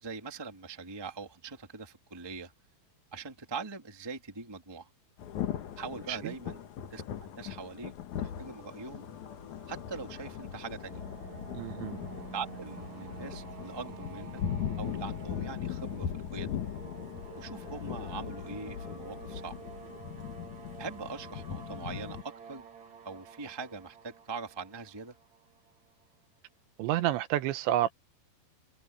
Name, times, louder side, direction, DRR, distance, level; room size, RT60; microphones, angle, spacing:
voice 1, 0.0-2.5 3.1-4.9 5.8-6.6 6.9-7.0 7.3-7.9 8.2-9.1 9.7-11.0 12.3-14.4 14.8-16.5 17.3-19.6 20.8-22.6 23.0-25.1, right 4 dB, 15° right, 0.8 m, -42 dB
Thunder / Rain, 5.2-22.2, left 9 dB, 65° left, 2.0 m, -39 dB
sound 1, 8.1-13.3, left 6 dB, 40° left, 3.7 m, -53 dB
sound 2, 10.3-26.1, right 7 dB, 40° right, 3.7 m, -50 dB
voice 2, 11.5-12.0 26.8-27.9, right 13 dB, 80° right, 3.1 m, -29 dB
omnidirectional pair, 5.4 m